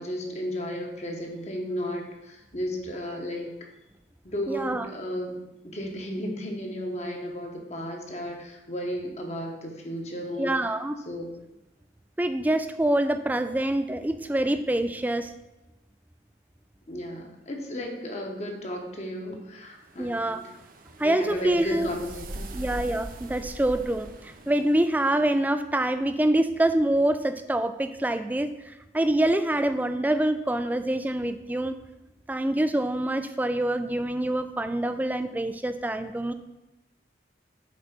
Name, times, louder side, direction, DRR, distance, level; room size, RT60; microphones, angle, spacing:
voice 1, 0.0-3.5 4.2-5.4 5.6-10.5 11.1-11.3 16.9-20.4 21.0-22.6, equal, 40° left, 1 dB, 1.2 m, -34 dB
voice 2, 4.5-4.9 10.4-11.0 12.2-15.3 20.0-20.4 21.0-21.9 22.5-31.8 32.3-36.3, right 1 dB, 10° right, 10 dB, 0.3 m, -26 dB
sound 1, 19.8-25.1, right 1 dB, 50° right, 0.7 m, -42 dB
7.6 x 4.0 x 5.9 m, 1.0 s
head